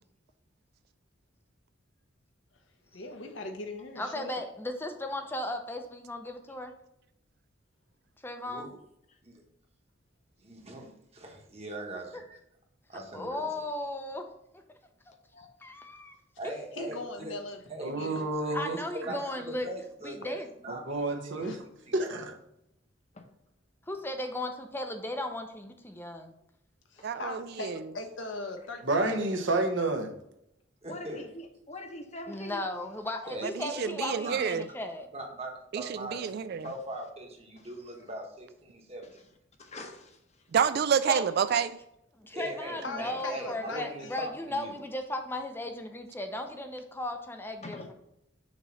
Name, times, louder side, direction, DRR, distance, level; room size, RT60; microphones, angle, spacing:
voice 1, 2.9-4.4 16.8-18.3 21.4-21.6 26.9-29.2 32.4-32.5 42.8-44.2, left 2 dB, 75° left, 1.0 m, -40 dB
voice 2, 4.0-6.7 8.2-8.7 13.1-14.3 15.6-16.2 18.5-19.7 20.0-20.5 23.9-26.3 32.3-35.1 41.1-41.2 42.2-47.9, left 1 dB, 10° left, 0.6 m, -36 dB
voice 3, 8.4-8.8 9.2-9.4 10.4-12.4 12.9-13.4 16.4-17.4 17.7-19.2 19.5-21.5 21.8-22.1 30.8-31.3 33.3-33.5 34.2-34.4 35.1-39.1 42.3-44.7, right 1 dB, 30° right, 1.2 m, -41 dB
voice 4, 17.8-18.8 20.7-21.6 21.9-22.3 28.8-30.1, right 2 dB, 70° right, 1.0 m, -29 dB
voice 5, 27.0-27.8 33.6-34.6 35.7-35.8 36.1-36.7 40.5-41.7, right 7 dB, 55° right, 0.3 m, -28 dB
voice 6, 30.9-32.6 39.6-40.1 47.6-47.9, left 1 dB, 35° left, 0.9 m, -42 dB
6.3 x 3.1 x 5.5 m
head